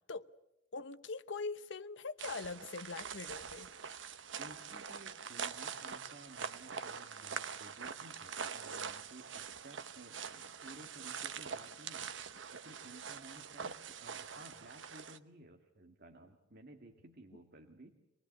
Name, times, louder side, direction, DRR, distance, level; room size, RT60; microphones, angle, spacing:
voice 1, 0.7-3.7, left 4 dB, 75° left, 0.9 m, -42 dB
sound 1, 2.2-15.2, right 6 dB, 90° right, 1.0 m, -44 dB
voice 2, 4.4-17.9, right 2 dB, 55° right, 1.8 m, -56 dB
26.0 x 20.0 x 8.1 m
head